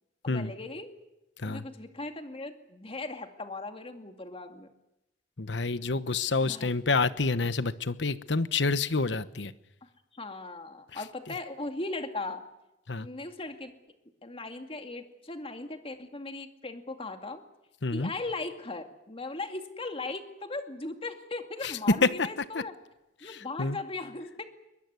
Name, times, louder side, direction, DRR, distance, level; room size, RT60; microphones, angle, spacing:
voice 1, 0.2-0.9 1.4-4.7 6.4-6.9 9.8-12.4 13.0-13.7 14.2-17.4 17.9-22.7 23.2-24.4, left 2 dB, 30° left, 6 dB, 2.3 m, -38 dB
voice 2, 5.4-9.5 10.9-11.0 12.9-13.1 17.8-18.1 21.6-21.7 22.0-22.3 22.5-22.6 23.2-23.8, left 4 dB, 70° left, 14 dB, 1.1 m, -28 dB
23.0 x 20.5 x 9.6 m, 0.92 s
head